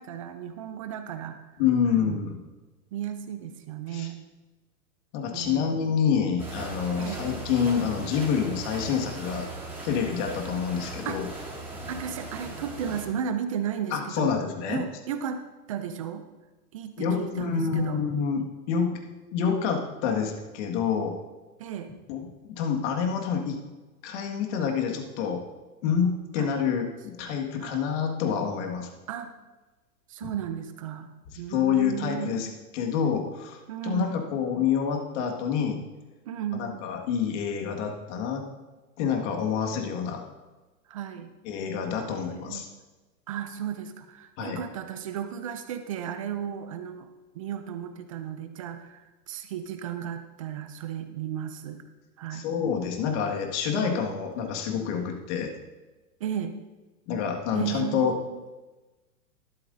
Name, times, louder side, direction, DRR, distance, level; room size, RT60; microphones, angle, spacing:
voice 1, 0.0-1.6 2.0-2.3 2.9-4.2 5.3-5.7 7.0-7.3 11.0-11.5 11.9-14.4 14.7-15.4 15.7-16.3 16.7-18.0 21.6-21.9 26.4-26.5 27.6-27.9 29.1-29.3 30.1-31.1 31.4-32.5 33.7-34.4 36.3-36.8 40.9-41.3 42.1-42.6 43.3-51.8 52.2-52.4 53.8-54.2 56.2-56.5 57.5-58.4, right 9 dB, 25° right, 8 dB, 0.3 m, -35 dB
voice 2, 1.6-2.4 3.9-4.1 5.1-9.5 9.8-11.3 13.9-14.8 17.0-19.0 19.3-21.2 22.1-23.6 24.0-25.4 25.8-28.9 30.2-30.3 31.5-32.5 32.7-35.8 36.6-38.4 39.0-40.3 41.5-42.7 44.4-44.6 52.3-55.5 57.1-58.1, left 7 dB, 50° left, 3 dB, 1.9 m, -27 dB
sound 1, 6.4-13.1, right 2 dB, 5° right, 3.9 m, -38 dB
13.0 x 12.5 x 2.6 m, 1.2 s
hypercardioid pair, 125°, 47 cm